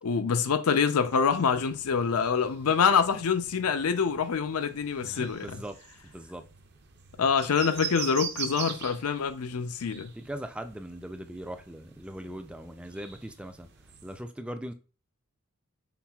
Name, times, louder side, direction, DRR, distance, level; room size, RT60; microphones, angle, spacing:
voice 1, 0.0-5.6 7.2-10.1, left 6 dB, 80° left, 0.5 m, -26 dB
sound 1, 1.0-14.2, right 8 dB, 50° right, 0.6 m, -43 dB
voice 2, 5.0-5.8 6.0-6.4 10.2-13.7 14.0-14.7, right 1 dB, 5° right, 0.3 m, -40 dB
5.8 x 3.9 x 2.3 m
head